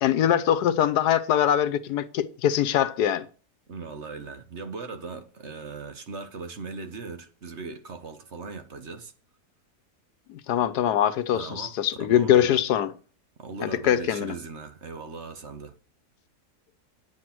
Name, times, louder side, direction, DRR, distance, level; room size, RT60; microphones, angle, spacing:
voice 1, 0.0-3.3 10.3-12.9 13.6-14.4, left 10 dB, 80° left, 1.3 m, -23 dB
voice 2, 3.7-9.1 11.3-12.6 13.4-15.7, right 4 dB, 50° right, 1.3 m, -39 dB
9.5 x 7.8 x 6.0 m
omnidirectional pair, 1.7 m